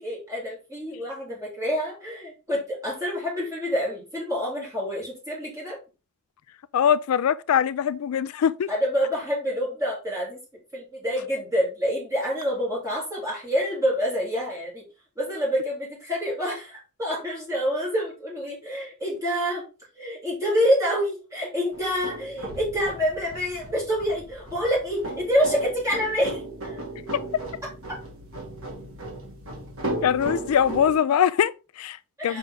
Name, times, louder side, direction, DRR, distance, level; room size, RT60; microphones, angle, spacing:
voice 1, 0.0-5.8 8.7-10.4 10.7-14.9 15.2-19.7 20.0-26.8 32.2-32.4, equal, 15° right, 3.8 m, -27 dB
voice 2, 6.7-8.7 30.0-32.0 32.2-32.4, left 8 dB, 75° left, 0.3 m, -22 dB
sound 1, 21.7-30.9, right 2 dB, 65° right, 2.5 m, -36 dB
6.1 x 5.3 x 3.8 m
head